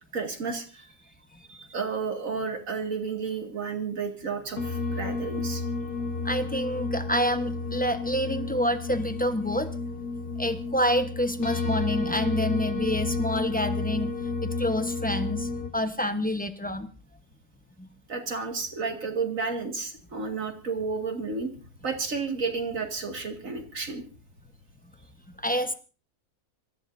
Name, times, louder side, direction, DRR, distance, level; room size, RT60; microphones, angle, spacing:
voice 1, 0.1-0.9 1.5-5.6 18.1-21.5 21.8-24.0, right 4 dB, 60° right, 4 dB, 2.5 m, -32 dB
sound 1, 4.6-15.7, left 3 dB, 65° left, 2.5 m, -31 dB
voice 2, 6.2-9.7 10.4-14.1 14.4-16.9 17.8-17.9 25.4-25.7, equal, 5° left, 8 dB, 0.8 m, -28 dB
26.5 x 14.5 x 2.7 m, 0.34 s
omnidirectional pair, 1.6 m